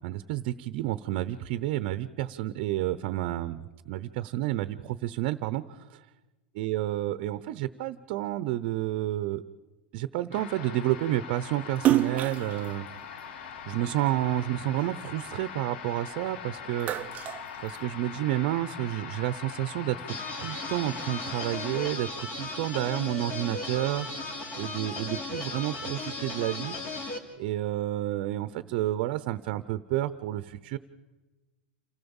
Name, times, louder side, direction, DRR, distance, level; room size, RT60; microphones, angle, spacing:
voice 1, 0.0-6.0 6.6-9.4 9.9-12.9 13.7-16.9 17.6-24.1 24.6-26.8 27.4-30.8, right 14 dB, 55° right, 13 dB, 0.8 m, -30 dB
sound 1, 10.3-22.0, left 8 dB, 75° left, 1.4 m, -42 dB
Splash splatter, 11.7-14.3 14.8-16.2 16.6-18.3, right 13 dB, 30° right, 0.6 m, -29 dB
sound 2, 20.1-27.2, left 2 dB, 35° left, 3.0 m, -36 dB
28.0 x 15.0 x 7.2 m, 1.2 s
supercardioid pair, 135°, 5 cm